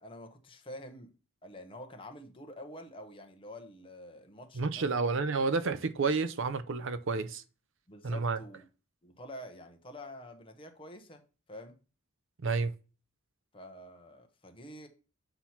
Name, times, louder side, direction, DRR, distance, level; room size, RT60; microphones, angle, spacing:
voice 1, 0.0-1.1 1.4-5.1 7.9-8.6 9.0-11.2 11.5-11.8 13.5-14.9, left 1 dB, 25° left, 0.8 m, -47 dB
voice 2, 4.6-7.4 8.0-8.4 12.4-12.7, right 4 dB, 60° right, 0.5 m, -30 dB
7.9 x 2.9 x 5.7 m
head